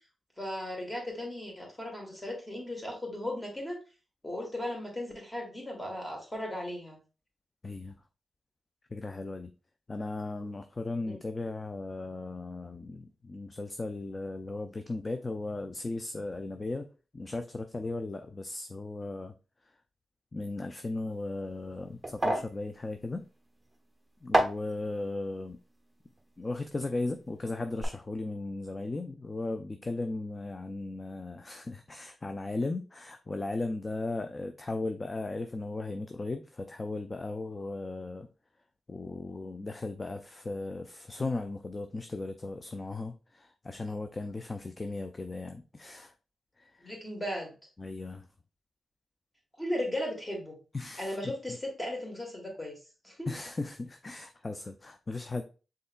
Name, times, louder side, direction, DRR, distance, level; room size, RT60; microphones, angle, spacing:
voice 1, 0.4-3.8 4.2-7.0 11.1-11.2 46.8-47.5 49.6-50.6 51.0-52.8 53.0-53.3, left 1 dB, 15° left, 1.8 m, -36 dB
voice 2, 7.6-7.9 8.9-9.5 9.9-16.9 17.1-19.3 20.3-23.2 24.2-25.6 26.4-38.3 38.9-46.1 46.6-46.9 47.8-48.3 50.7-51.6 53.3-55.4, left 2 dB, 35° left, 0.4 m, -36 dB
sound 1, 21.1-27.3 27.6-27.8, right 1 dB, 10° right, 1.0 m, -33 dB
5.4 x 3.7 x 2.2 m
cardioid pair, 65°, 0 cm